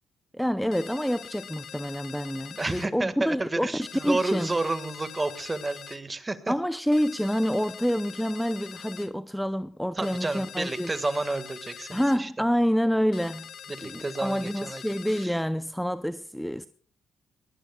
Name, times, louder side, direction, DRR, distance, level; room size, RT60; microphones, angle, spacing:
voice 1, 0.3-4.5 6.5-11.0 11.9-13.5 13.8-16.7, equal, ahead, 0.5 m, -27 dB
sound 1, 0.7-2.9 3.8-6.0 6.9-9.1 10.0-12.2 13.1-15.3, left 8 dB, 60° left, 1.0 m, -44 dB
voice 2, 2.6-6.5 10.0-12.3 13.8-14.8 15.2-15.4, right 2 dB, 20° right, 1.7 m, -30 dB
22.5 x 19.0 x 2.3 m
cardioid pair, 90°, 0 cm